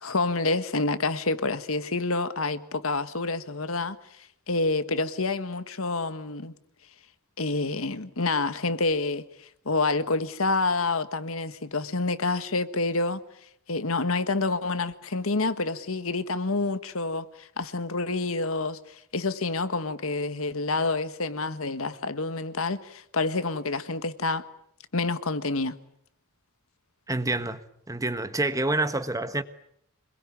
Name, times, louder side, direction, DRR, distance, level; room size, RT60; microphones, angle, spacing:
voice 1, 0.0-4.0 4.5-6.5 7.4-9.3 9.6-13.2 13.7-18.8 19.1-24.4 24.9-25.8, left 3 dB, 70° left, 1.6 m, -28 dB
voice 2, 27.1-27.6 27.9-29.4, right 2 dB, 15° right, 1.3 m, -27 dB
26.5 x 21.5 x 9.4 m
head